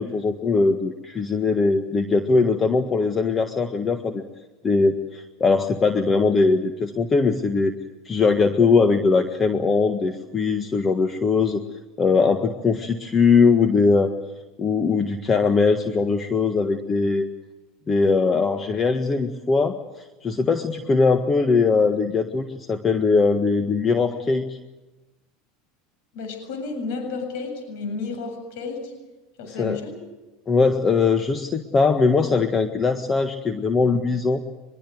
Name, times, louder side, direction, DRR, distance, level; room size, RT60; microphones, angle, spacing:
voice 1, 0.0-4.2 4.6-7.7 8.0-11.6 12.0-14.1 14.6-17.3 17.9-19.8 20.2-24.6 29.6-29.8 30.5-34.4, left 4 dB, 25° left, 7 dB, 1.6 m, -20 dB
voice 2, 26.1-28.9 29.4-30.0, left 4 dB, 70° left, 5 dB, 7.4 m, -32 dB
24.0 x 22.5 x 7.9 m, 1.1 s
supercardioid pair, 120°, 0 cm